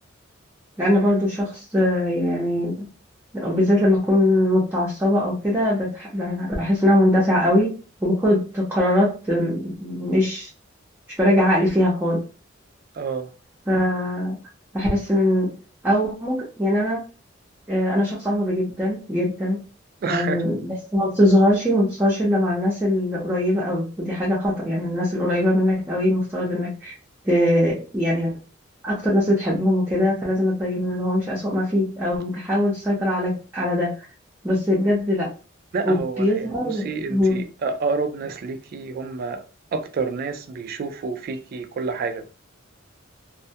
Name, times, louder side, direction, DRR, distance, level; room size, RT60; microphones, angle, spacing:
voice 1, 0.8-2.9 3.3-7.7 8.0-10.5 11.2-12.2 13.7-14.4 14.7-15.5 15.8-17.0 17.7-19.6 20.0-26.9 27.2-28.3 28.8-33.9 34.4-35.3 35.8-37.4, left 1 dB, 10° right, 0.6 m, -21 dB
voice 2, 12.9-13.3 20.0-20.4 35.7-39.4 39.7-42.2, right 4 dB, 50° right, 0.3 m, -28 dB
2.2 x 2.1 x 2.7 m
head